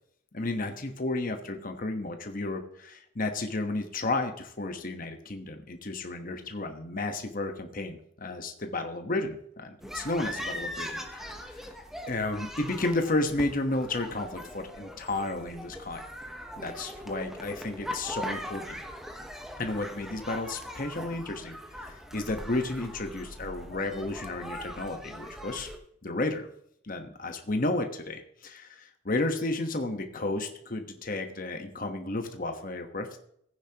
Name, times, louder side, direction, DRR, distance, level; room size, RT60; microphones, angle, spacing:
voice 1, 0.3-11.7 12.1-16.1 16.6-18.8 19.6-25.7 26.0-26.5 26.8-33.2, left 2 dB, 40° left, 5 dB, 1.1 m, -32 dB
sound 1, 9.8-25.8, equal, ahead, 0.9 m, -40 dB
15.5 x 9.5 x 2.9 m, 0.70 s
head